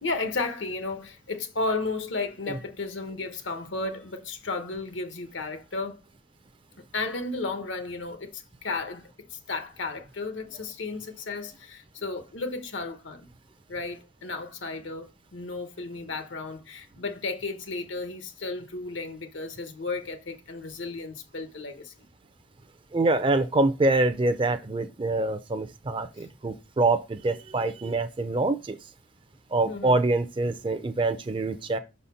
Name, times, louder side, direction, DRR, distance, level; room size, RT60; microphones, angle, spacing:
voice 1, 0.0-6.0 6.8-13.3 13.7-21.9 29.6-30.0, left 3 dB, 85° left, 1.1 m, -34 dB
voice 2, 22.9-28.8 29.5-31.8, right 2 dB, 25° right, 0.4 m, -25 dB
5.9 x 4.2 x 5.6 m
head